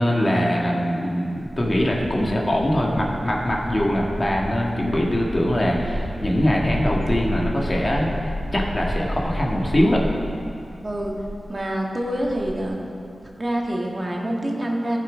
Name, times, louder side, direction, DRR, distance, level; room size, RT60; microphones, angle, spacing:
voice 1, 0.0-8.1 8.5-10.0, equal, 40° left, -2 dB, 1.8 m, -22 dB
sound 1, 1.3-11.7 12.0-12.7, equal, 5° right, 2.4 m, -32 dB
voice 2, 10.8-11.1 11.5-12.9 13.4-15.0, right 1 dB, 35° right, -1 dB, 1.8 m, -26 dB
14.5 x 6.8 x 5.1 m, 2.7 s
cardioid pair, 45°, 0 cm